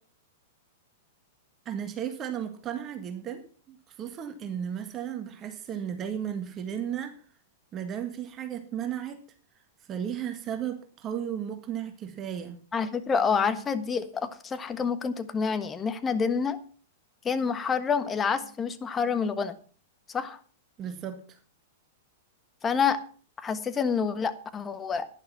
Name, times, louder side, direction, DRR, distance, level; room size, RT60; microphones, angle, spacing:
voice 1, 1.7-7.2 7.7-9.2 9.8-12.6 20.8-21.4, right 9 dB, 30° right, 1.7 m, -34 dB
voice 2, 12.7-16.6 17.2-19.5 20.1-20.4 22.6-23.0 23.4-25.1, left 6 dB, 20° left, 1.4 m, -28 dB
11.5 x 10.5 x 5.9 m
hypercardioid pair, 105°, 0 cm